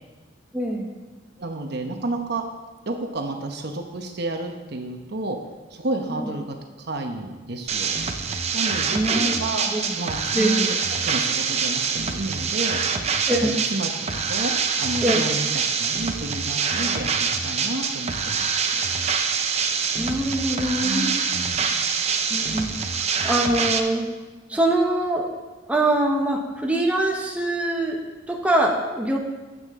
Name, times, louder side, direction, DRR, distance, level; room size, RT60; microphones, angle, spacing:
voice 1, 0.5-0.9 6.1-6.3 8.9-9.4 9.7-10.0 10.3-10.6 13.3-13.5 15.0-15.2 20.0-21.2 22.3-22.7 23.2-24.1 24.5-25.3 25.7-28.0 28.3-29.2, right 1 dB, 5° right, 0 dB, 1.0 m, -23 dB
voice 2, 1.4-2.4 2.9-5.4 5.7-7.9 8.5-9.7 10.0-10.8 11.0-12.8 13.4-13.9 14.3-14.5 14.8-15.5 15.8-18.8 20.8-21.8, right 2 dB, 60° right, 4 dB, 1.0 m, -31 dB
sound 1, 7.7-23.8, right 5 dB, 35° right, 0.7 m, -25 dB
12.0 x 7.9 x 3.7 m, 1.2 s
head